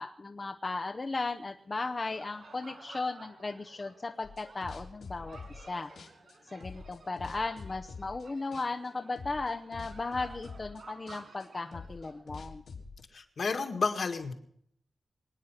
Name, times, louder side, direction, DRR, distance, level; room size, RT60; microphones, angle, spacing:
voice 1, 0.0-5.9 6.5-12.6, left 3 dB, 30° left, 5 dB, 0.8 m, -36 dB
sound 1, 1.2-12.2, right 3 dB, 60° right, 6.5 m, -54 dB
sound 2, 4.2-5.7 6.0-8.3 8.5-8.9 9.2-13.0, left 4 dB, 85° left, 3.2 m, -46 dB
voice 2, 13.1-14.3, left 4 dB, 55° left, 5 dB, 2.0 m, -31 dB
25.0 x 9.5 x 5.8 m, 0.68 s
wide cardioid pair, 145°, 0 cm